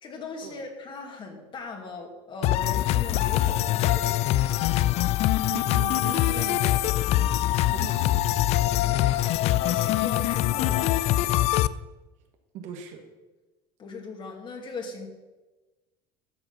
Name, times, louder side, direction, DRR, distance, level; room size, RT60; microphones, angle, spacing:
voice 1, 0.0-4.4 8.7-11.2 13.8-15.1, left 3 dB, 40° left, 3 dB, 2.2 m, -39 dB
sound 1, 2.4-11.7, left 14 dB, 55° left, 0.4 m, -23 dB
voice 2, 5.5-8.2 12.5-13.0, right 8 dB, 65° right, 4 dB, 1.6 m, -39 dB
12.5 x 4.9 x 5.9 m, 1.1 s
supercardioid pair, 105°, 13 cm